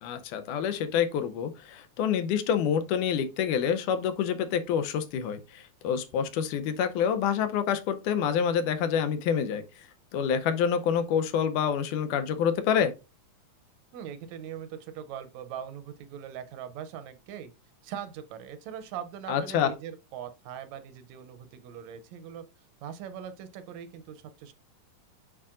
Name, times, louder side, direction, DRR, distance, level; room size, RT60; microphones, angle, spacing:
voice 1, 0.0-9.9 10.1-12.9 19.3-19.7, left 8 dB, 85° left, 2.2 m, -27 dB
voice 2, 13.9-17.5 17.8-22.5 22.8-24.5, right 9 dB, 75° right, 1.8 m, -41 dB
8.6 x 4.7 x 2.5 m
omnidirectional pair, 3.6 m